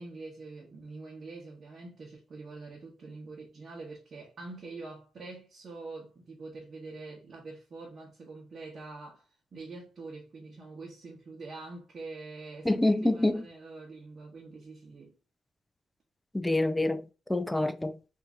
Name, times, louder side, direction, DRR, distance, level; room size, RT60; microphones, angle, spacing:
voice 1, 0.0-9.2 9.5-15.1, right 3 dB, 45° right, 1.0 m, -45 dB
voice 2, 12.7-13.4 16.3-17.0 17.3-18.0, left 1 dB, 10° left, 0.3 m, -26 dB
2.8 x 2.7 x 3.6 m
cardioid pair, 90°, 0 cm